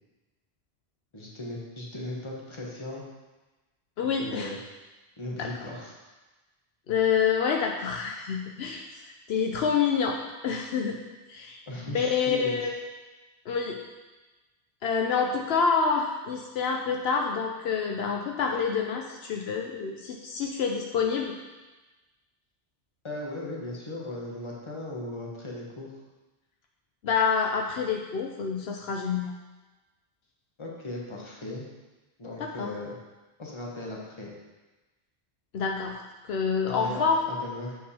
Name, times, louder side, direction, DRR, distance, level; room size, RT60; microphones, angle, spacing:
voice 1, 1.1-3.0 4.2-4.6 5.2-5.9 11.7-12.7 23.0-25.9 30.6-31.7 32.2-33.0 33.4-34.3 36.7-37.8, left 2 dB, 30° left, -2 dB, 1.2 m, -37 dB
voice 2, 4.0-4.5 5.4-5.7 6.9-8.8 9.3-10.2 10.4-11.0 11.3-11.6 11.9-12.7 13.5-13.8 14.8-21.3 27.0-29.3 32.4-32.7 35.5-36.0 36.2-37.2, left 6 dB, 75° left, 1 dB, 0.9 m, -27 dB
7.3 x 4.6 x 4.2 m, 1.2 s
omnidirectional pair, 1.1 m